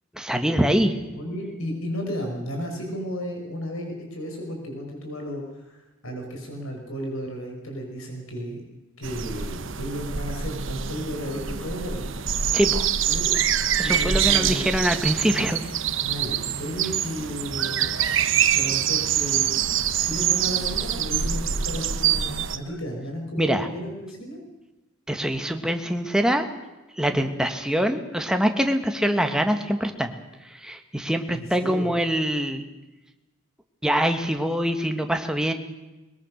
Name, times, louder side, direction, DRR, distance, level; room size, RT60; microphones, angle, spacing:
voice 1, 0.1-0.9 12.5-12.9 13.8-15.6 23.4-23.7 25.1-26.5 27.0-30.1 30.4-32.6 33.8-35.5, equal, 5° right, 5 dB, 1.7 m, -24 dB
voice 2, 1.2-5.4 5.7-8.6 9.0-12.1 13.1-13.3 13.8-14.7 16.0-18.0 18.5-19.6 19.9-24.4 27.1-27.2 31.3-31.9, equal, 90° left, 2 dB, 5.5 m, -34 dB
sound 1, 9.0-22.6, right 9 dB, 65° right, 1.1 m, -25 dB
22.5 x 21.5 x 6.5 m, 1.0 s
head